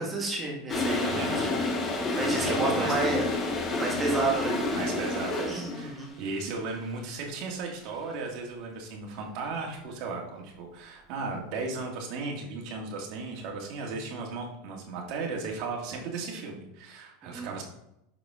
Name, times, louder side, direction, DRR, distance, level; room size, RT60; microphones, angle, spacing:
voice 1, 0.0-1.6 1.8-3.2 3.8-4.7 5.5-6.1 17.2-17.5, right 3 dB, 20° right, -1 dB, 1.6 m, -31 dB
Toilet flush, 0.7-5.9, left 3 dB, 25° left, 1.0 m, -29 dB
voice 2, 1.0-1.5 2.2-2.9 4.7-17.6, right 3 dB, 55° right, 0 dB, 1.9 m, -36 dB
6.3 x 4.9 x 3.6 m, 0.82 s
supercardioid pair, 130°, 0 cm